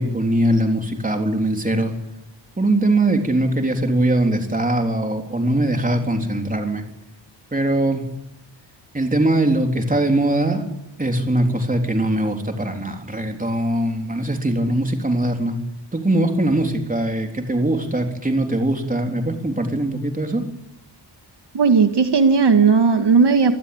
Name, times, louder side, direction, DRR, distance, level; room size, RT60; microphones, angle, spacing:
voice 1, 0.0-1.9 2.6-6.8 7.5-8.0 8.9-10.6 11.0-15.6 15.9-20.4, right 1 dB, 20° right, 4 dB, 3.8 m, -21 dB
voice 2, 21.5-23.5, right 5 dB, 65° right, 7 dB, 1.8 m, -15 dB
27.0 x 19.5 x 8.7 m, 0.83 s
wide cardioid pair, 150°, 44 cm